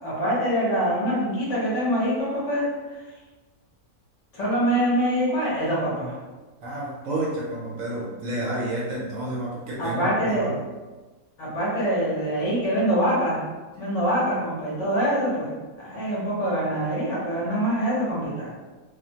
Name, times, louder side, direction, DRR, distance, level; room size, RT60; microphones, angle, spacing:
voice 1, 0.0-3.0 4.3-6.1 9.8-10.5 11.4-13.4 13.8-18.5, equal, 55° left, -7 dB, 1.1 m, -24 dB
voice 2, 6.6-10.6, right 1 dB, 70° right, -4 dB, 0.9 m, -30 dB
2.7 x 2.1 x 2.7 m, 1.2 s
omnidirectional pair, 1.6 m